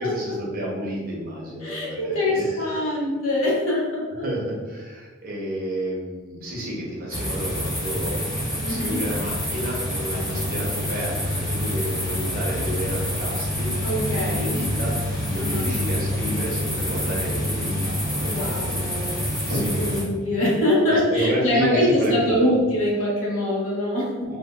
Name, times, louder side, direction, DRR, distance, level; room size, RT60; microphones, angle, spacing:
voice 1, 0.0-3.1 4.2-8.3 8.7-13.7 14.3-19.0 19.5-20.0 20.9-22.6 24.2-24.4, equal, 45° right, -3 dB, 0.6 m, -30 dB
voice 2, 1.6-4.1 8.6-9.0 10.3-10.5 13.8-14.6 15.3-15.7 18.2-24.1, left 1 dB, 75° left, -5 dB, 0.9 m, -24 dB
sound 1, 7.1-20.0, left 1 dB, 20° left, 1.0 m, -27 dB
3.3 x 2.2 x 2.2 m, 1.4 s
head